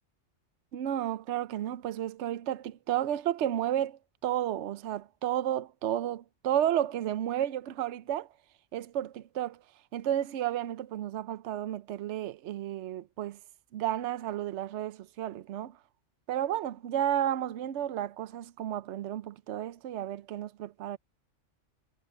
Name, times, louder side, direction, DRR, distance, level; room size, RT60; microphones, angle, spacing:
voice 1, 0.7-8.3 8.7-9.6 9.9-13.4 13.7-15.8 16.3-21.0, right 11 dB, 70° right, 0.9 m, -32 dB
omnidirectional pair, 1.3 m